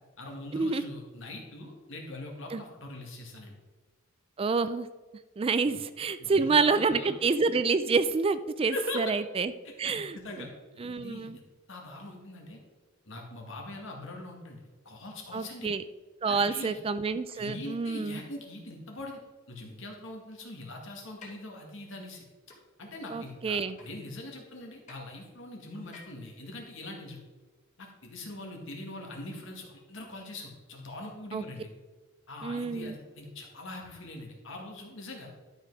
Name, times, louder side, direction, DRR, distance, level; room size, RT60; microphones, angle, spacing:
voice 1, 0.2-3.5 5.6-5.8 6.2-7.1 8.7-9.1 9.6-10.5 10.7-11.4 11.7-12.6 13.1-15.7 16.2-16.8 17.3-19.2 19.5-22.2 22.8-27.2 27.8-31.7 32.3-35.3, left 2 dB, 65° left, 1 dB, 2.1 m, -42 dB
voice 2, 4.4-4.9 5.4-9.5 9.8-10.5 10.8-11.4 15.3-15.8 16.2-18.2 23.1-23.8 31.3-31.4 32.4-33.0, right 4 dB, 25° right, 13 dB, 0.3 m, -28 dB
sound 1, 21.2-21.3 22.5-22.6 23.8-23.9 24.9-25.0 25.9-26.2, left 4 dB, 35° left, 2.7 m, -48 dB
12.0 x 5.6 x 4.8 m, 1.3 s
head